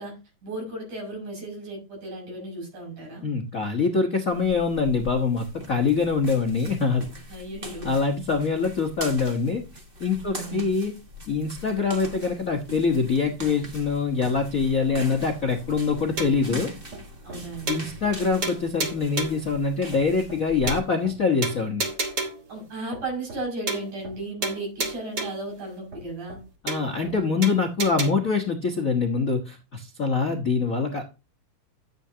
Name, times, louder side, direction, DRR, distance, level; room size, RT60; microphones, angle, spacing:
voice 1, 0.0-3.2 7.3-8.0 10.3-10.6 17.2-17.9 22.5-26.4, right 2 dB, 75° right, 0 dB, 7.6 m, -35 dB
voice 2, 3.2-7.0 7.8-9.6 10.0-10.9 11.3-16.7 17.7-21.8 26.6-31.0, left 4 dB, 85° left, 3 dB, 0.7 m, -24 dB
sound 1, 4.3-20.8, equal, 55° right, 0.5 m, -41 dB
sound 2, 16.2-16.5 16.9-17.0 17.3-17.4 17.7-18.2 18.4-19.5 19.9-20.0 20.3-20.4 20.7-21.1 21.4-22.5 22.9-23.0 23.3-23.4 23.7-24.2 24.4-25.5 25.9-26.0 26.3-26.4 26.7-27.1 27.4-28.1, right 3 dB, 40° right, 1.7 m, -31 dB
12.0 x 8.5 x 2.8 m, 0.28 s
omnidirectional pair, 3.6 m